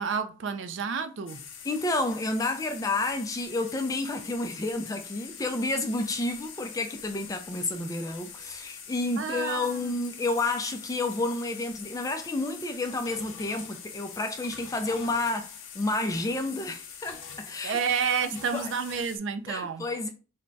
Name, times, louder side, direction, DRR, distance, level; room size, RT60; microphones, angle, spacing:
voice 1, 0.0-1.4 9.2-10.0 17.6-19.9, right 6 dB, 60° right, 0.4 m, -30 dB
sound 1, 1.3-19.2, left 7 dB, 65° left, 0.6 m, -44 dB
voice 2, 1.6-17.8 18.3-18.7 19.5-20.1, left 2 dB, 15° left, 0.3 m, -30 dB
3.4 x 2.1 x 3.9 m
head